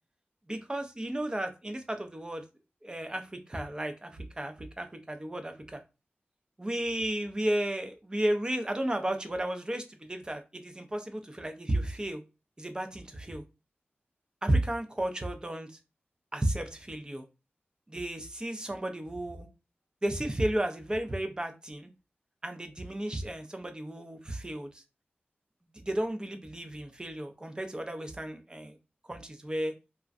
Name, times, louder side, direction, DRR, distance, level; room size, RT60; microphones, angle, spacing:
voice 1, 0.5-2.4 2.8-5.8 6.6-12.2 12.6-13.4 14.4-15.8 16.3-17.3 17.9-19.5 20.0-21.9 22.4-24.8 25.7-28.8 29.0-29.7, right 1 dB, 20° right, 6 dB, 0.4 m, -33 dB
2.4 x 2.1 x 2.5 m, 0.29 s
wide cardioid pair, 80°, 4 cm